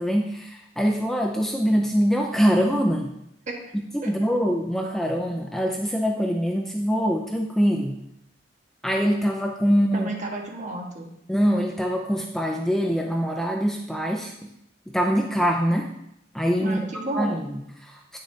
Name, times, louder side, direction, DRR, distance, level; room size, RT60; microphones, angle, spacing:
voice 1, 0.0-3.1 3.7-7.9 8.8-10.1 11.3-14.3 14.9-15.9 16.3-16.8 17.1-18.2, equal, ahead, 1 dB, 0.5 m, -24 dB
voice 2, 9.9-11.1 16.6-17.4, right 2 dB, 40° right, 0 dB, 1.4 m, -32 dB
9.4 x 6.6 x 2.8 m, 0.79 s
head